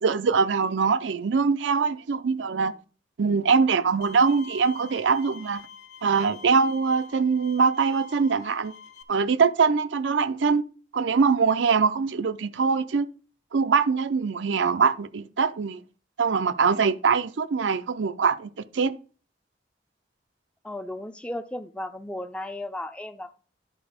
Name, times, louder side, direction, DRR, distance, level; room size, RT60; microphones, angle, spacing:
voice 1, 0.0-2.7 3.2-5.6 6.0-8.7 9.1-10.6 10.9-13.1 13.5-15.8 16.2-18.9, right 5 dB, 85° right, 0.5 m, -23 dB
Bowed string instrument, 4.0-9.0, left 5 dB, 65° left, 1.1 m, -46 dB
voice 2, 20.6-23.3, left 1 dB, 5° left, 0.5 m, -35 dB
11.0 x 4.3 x 5.0 m
head